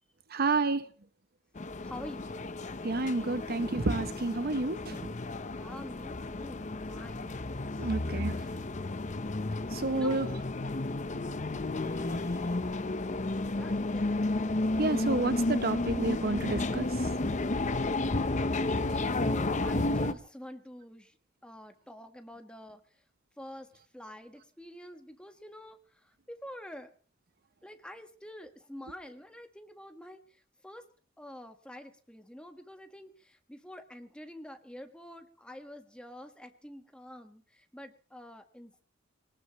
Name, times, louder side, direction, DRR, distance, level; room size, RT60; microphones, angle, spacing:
voice 1, 0.3-0.9 2.8-5.0 7.8-8.5 9.7-10.3 14.8-17.1, right 3 dB, 50° right, 13 dB, 0.8 m, -30 dB
sound 1, 1.6-20.1, left 2 dB, 40° left, 0.8 m, -32 dB
voice 2, 1.8-2.3 5.5-7.4 7.7-7.9 9.9-10.2 13.5-14.2 18.7-21.2 21.4-23.0 23.4-26.9 27.6-30.8 31.2-38.8, left 1 dB, 5° left, 6 dB, 1.5 m, -47 dB
23.0 x 19.5 x 3.1 m, 0.40 s
head